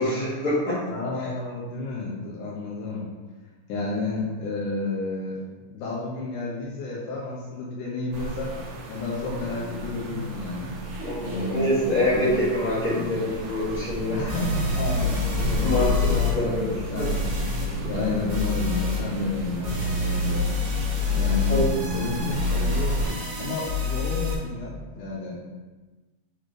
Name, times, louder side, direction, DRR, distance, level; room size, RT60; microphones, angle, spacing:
voice 1, 0.0-0.8 1.2-1.3 11.0-14.2 15.6-17.1 21.5-21.6, left 1 dB, 40° left, -13 dB, 1.9 m, -25 dB
voice 2, 0.9-3.1 3.7-5.4 5.7-10.8 11.2-12.3 12.9-13.3 14.2-15.8 16.4-17.1 17.8-20.5 21.1-25.5, left 3 dB, 85° left, -5 dB, 1.8 m, -31 dB
sound 1, 8.1-23.1, right 2 dB, 80° right, 3.2 m, -33 dB
sound 2, 14.3-16.3 16.9-17.6 18.3-19.0 19.6-24.3, left 4 dB, 60° right, 2.6 m, -26 dB
8.7 x 4.2 x 3.2 m, 1.2 s
omnidirectional pair, 5.1 m